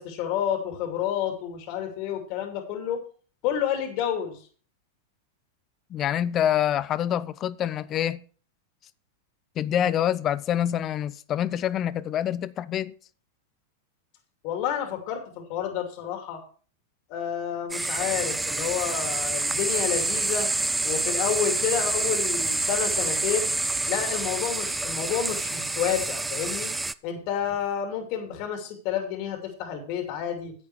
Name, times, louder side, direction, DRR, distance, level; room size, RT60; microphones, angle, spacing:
voice 1, 0.0-3.0 3.4-4.4 14.4-16.4 17.1-20.5 20.8-23.5 23.9-26.7 27.0-30.5, left 9 dB, 50° left, 2.5 m, -29 dB
voice 2, 5.9-8.2 9.6-12.9, left 10 dB, 35° left, 0.6 m, -26 dB
sound 1, 17.7-26.9, right 2 dB, 10° right, 0.4 m, -27 dB
9.8 x 8.5 x 4.7 m
hypercardioid pair, 100°, 0 cm